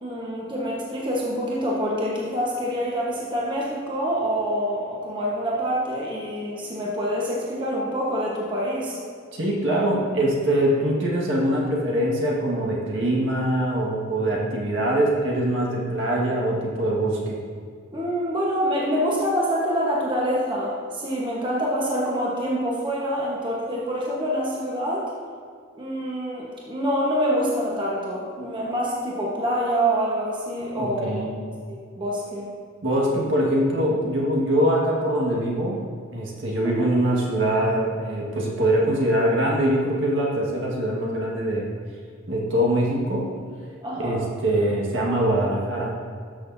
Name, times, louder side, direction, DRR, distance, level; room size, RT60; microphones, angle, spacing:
voice 1, 0.0-9.0 17.9-25.1 25.7-32.5 36.6-36.9 43.8-44.3, equal, 25° right, -5 dB, 1.2 m, -26 dB
voice 2, 9.3-17.4 30.7-31.3 32.8-35.8 36.1-41.7 42.3-43.3 44.0-45.9, right 1 dB, 65° right, -3 dB, 1.7 m, -23 dB
12.5 x 6.3 x 2.7 m, 2.1 s
head